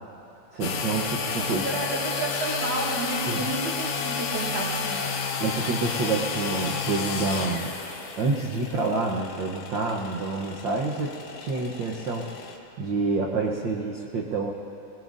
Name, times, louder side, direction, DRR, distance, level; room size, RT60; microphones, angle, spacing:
voice 1, 0.5-1.6 3.3-3.4 5.4-7.7 8.2-11.1 11.4-12.3 12.8-14.5, right 3 dB, 75° right, -1 dB, 1.0 m, -28 dB
sound 1, 0.6-12.6, left 5 dB, 85° left, 2.5 m, -31 dB
voice 2, 1.4-5.2, right 2 dB, 40° right, -6 dB, 3.3 m, -31 dB
21.5 x 21.5 x 2.6 m, 2.8 s
omnidirectional pair, 3.4 m